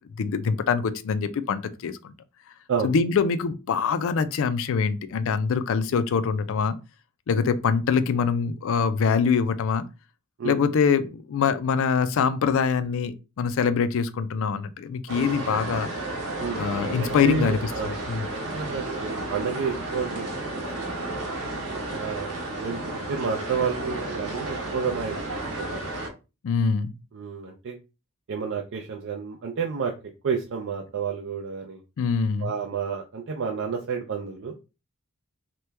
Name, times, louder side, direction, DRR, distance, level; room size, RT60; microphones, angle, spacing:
voice 1, 0.1-2.1 2.8-6.7 7.3-9.8 10.4-15.9 16.5-18.3 26.4-26.9 32.0-32.5, left 6 dB, 60° left, 0.4 m, -24 dB
sound 1, 15.1-26.1, right 2 dB, 75° right, 0.8 m, -32 dB
voice 2, 17.0-17.9 18.3-21.2 21.9-25.2 25.6-25.8 27.1-27.8 28.3-29.9 30.2-31.8 32.4-34.6, right 5 dB, 55° right, 0.4 m, -30 dB
2.9 x 2.2 x 3.3 m
head